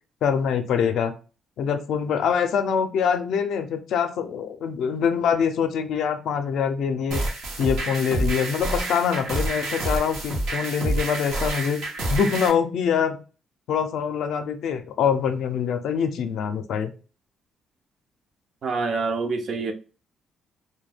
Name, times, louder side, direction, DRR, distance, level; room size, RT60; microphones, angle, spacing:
voice 1, 0.2-1.1 1.6-7.2 7.6-11.8 12.1-13.2 13.7-16.9, left 7 dB, 75° left, 0.4 m, -24 dB
sound 1, 7.1-12.5, right 1 dB, 85° right, 0.8 m, -28 dB
voice 2, 18.6-19.7, right 4 dB, 60° right, 0.5 m, -26 dB
2.2 x 2.2 x 3.2 m
cardioid pair, 90°, 0 cm